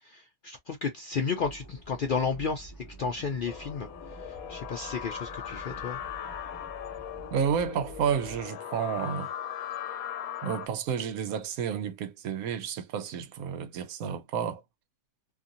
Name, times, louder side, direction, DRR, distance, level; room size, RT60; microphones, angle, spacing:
voice 1, 0.0-2.7 3.0-3.9 4.2-6.0, left 5 dB, 65° left, 0.5 m, -32 dB
sound 1, 1.4-8.4, right 1 dB, 20° left, 0.6 m, -48 dB
sound 2, 3.5-10.7, left 9 dB, 85° left, 1.1 m, -39 dB
voice 2, 7.3-9.3 10.4-14.6, right 7 dB, 85° right, 1.1 m, -31 dB
2.8 x 2.7 x 2.5 m
omnidirectional pair, 1.5 m